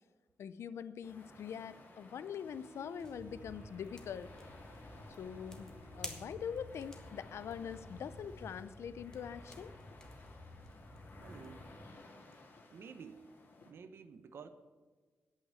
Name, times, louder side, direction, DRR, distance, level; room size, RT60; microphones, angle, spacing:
voice 1, 0.4-4.3 5.2-9.7, left 8 dB, 80° left, 14 dB, 0.5 m, -43 dB
sound 1, 1.0-13.7, left 2 dB, 50° left, 1.9 m, -57 dB
Wind instrument woodwind instrument, 2.5-6.6, right 3 dB, 45° right, 1.9 m, -59 dB
sound 2, 3.0-11.8, left 1 dB, 15° left, 1.2 m, -52 dB
voice 2, 11.2-11.7 12.7-13.3 13.6-14.5, right 6 dB, 65° right, 10 dB, 0.9 m, -51 dB
8.7 x 8.6 x 8.2 m, 1.4 s
wide cardioid pair, 160°, 4 cm